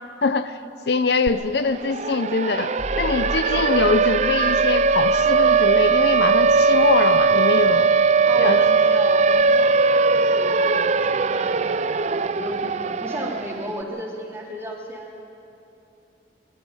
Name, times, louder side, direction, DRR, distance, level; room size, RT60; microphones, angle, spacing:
voice 1, 0.2-0.6 0.9-7.9 8.4-8.6, left 4 dB, 65° left, 11 dB, 0.6 m, -23 dB
Siren, 1.3-1.4 1.7-13.7, right 4 dB, 40° right, 0.4 m, -19 dB
sound 1, 2.8-7.8, equal, 25° left, 2.1 m, -36 dB
voice 2, 8.3-11.7 12.2-15.2, right 1 dB, 15° right, -3 dB, 3.4 m, -34 dB
24.0 x 13.0 x 9.8 m, 2.8 s
head